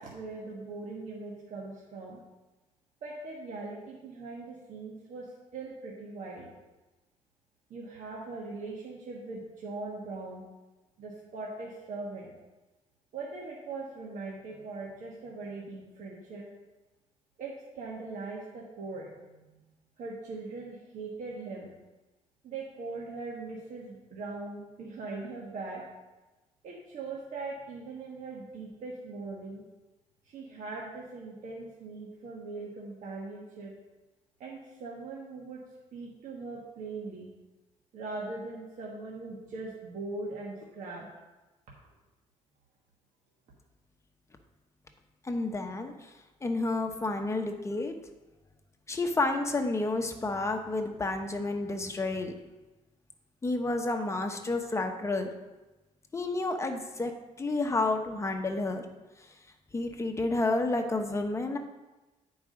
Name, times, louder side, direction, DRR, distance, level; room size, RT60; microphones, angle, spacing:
voice 1, 0.0-2.2 3.0-5.3 5.5-6.5 7.7-10.4 11.0-12.4 13.1-16.4 17.4-19.3 20.0-21.7 22.4-25.8 26.6-29.6 30.2-33.7 34.4-35.6 35.9-37.3 37.9-41.1, right 3 dB, 70° right, -4 dB, 1.5 m, -40 dB
voice 2, 45.2-46.1 46.4-47.9 48.9-52.3 53.4-55.3 56.1-57.1 57.4-58.8 59.7-61.6, left 2 dB, 20° left, 4 dB, 1.0 m, -30 dB
9.0 x 4.8 x 5.1 m, 1.1 s
cardioid pair, 100°, 13 cm